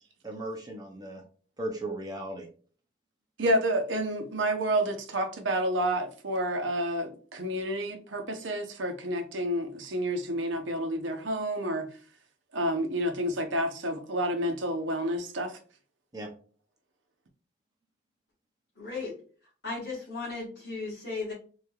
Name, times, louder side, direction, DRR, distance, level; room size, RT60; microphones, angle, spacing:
voice 1, 0.2-1.2 1.6-2.5 16.1-16.3, right 1 dB, 20° right, 0.6 m, -36 dB
voice 2, 3.4-11.9 12.5-15.6, right 1 dB, 85° right, 0.7 m, -29 dB
voice 3, 18.8-19.2 19.6-21.3, left 3 dB, 60° left, 1.5 m, -35 dB
3.8 x 3.1 x 2.3 m
head